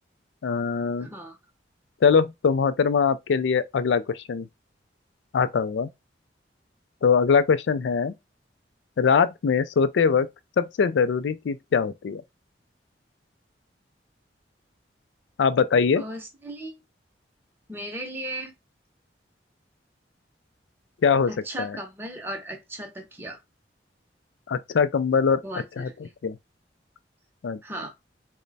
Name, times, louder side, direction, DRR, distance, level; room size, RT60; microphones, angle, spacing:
voice 1, 0.4-1.1 2.0-4.5 5.3-5.9 7.0-8.1 9.0-10.3 10.6-12.2 15.4-16.0 21.0-21.3 21.6-21.8 24.5-25.4 25.8-25.9 26.2-26.4 27.4-27.6, left 6 dB, 80° left, 0.4 m, -22 dB
voice 2, 1.0-1.4 16.0-16.8 17.7-18.5 21.3-23.4 25.4-26.1 27.6-27.9, right 1 dB, 10° right, 0.7 m, -36 dB
3.2 x 2.1 x 3.9 m
head